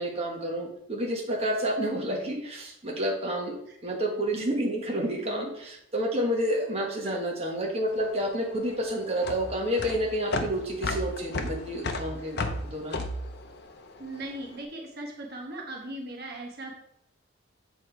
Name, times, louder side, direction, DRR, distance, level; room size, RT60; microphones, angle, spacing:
voice 1, 0.0-3.6 3.8-12.4 12.6-13.0, equal, 30° right, -1 dB, 1.3 m, -29 dB
sound 1, 7.9-14.4, left 2 dB, 55° left, 0.7 m, -33 dB
voice 2, 14.0-16.8, right 1 dB, 55° right, 0 dB, 1.2 m, -38 dB
7.4 x 4.3 x 4.6 m, 0.76 s
head